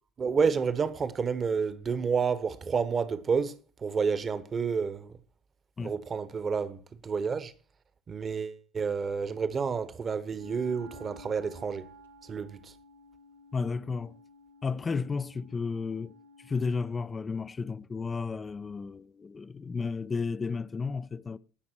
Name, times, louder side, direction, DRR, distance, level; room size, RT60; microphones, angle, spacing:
voice 1, 0.2-5.2 5.8-7.5 8.1-11.9 12.2-12.7, right 5 dB, 35° right, 1.2 m, -30 dB
Wind instrument woodwind instrument, 10.3-17.0, left 1 dB, 85° right, 1.0 m, -53 dB
voice 2, 13.5-14.2 14.6-21.4, left 4 dB, 25° left, 0.5 m, -33 dB
17.5 x 6.0 x 4.5 m
hypercardioid pair, 65°, 0 cm